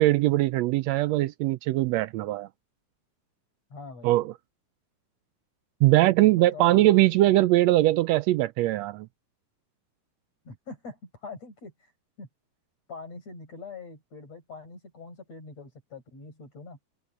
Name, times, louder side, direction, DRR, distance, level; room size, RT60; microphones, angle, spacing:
voice 1, 0.0-2.5 4.0-4.3 5.8-9.1, right 16 dB, 80° right, 1.5 m, -21 dB
voice 2, 3.7-4.1 6.2-7.0 10.4-11.9 12.2-12.3 12.9-16.8, left 4 dB, 60° left, 7.7 m, -43 dB
omnidirectional pair, 3.4 m